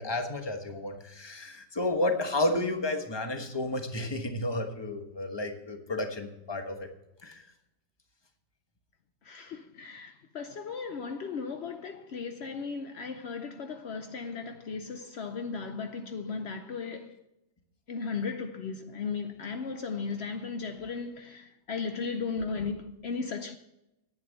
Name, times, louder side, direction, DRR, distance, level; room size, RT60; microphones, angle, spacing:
voice 1, 0.0-6.9 7.2-7.4, left 2 dB, 15° left, 1.0 m, -31 dB
voice 2, 9.2-17.2 17.9-23.6, left 5 dB, 75° left, 0.6 m, -36 dB
10.5 x 8.9 x 6.4 m
omnidirectional pair, 2.0 m